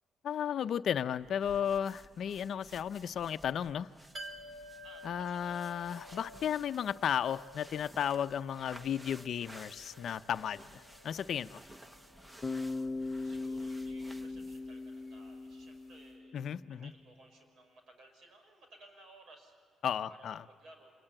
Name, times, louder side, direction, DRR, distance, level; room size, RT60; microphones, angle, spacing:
voice 1, 0.2-3.9 5.0-11.6 16.3-16.9 19.8-20.4, left 9 dB, 65° left, 12 dB, 0.6 m, -34 dB
sound 1, 1.2-14.7, equal, 10° right, 1.0 m, -55 dB
sound 2, 4.1-15.8 16.0-16.1, right 1 dB, 30° right, 3.6 m, -54 dB
voice 2, 4.8-5.6 13.1-20.9, right 2 dB, 65° right, 5 dB, 6.0 m, -59 dB
Bass guitar, 12.4-16.5, left 3 dB, 25° left, 0.9 m, -39 dB
26.0 x 21.0 x 8.8 m, 2.2 s
cardioid pair, 90°, 0 cm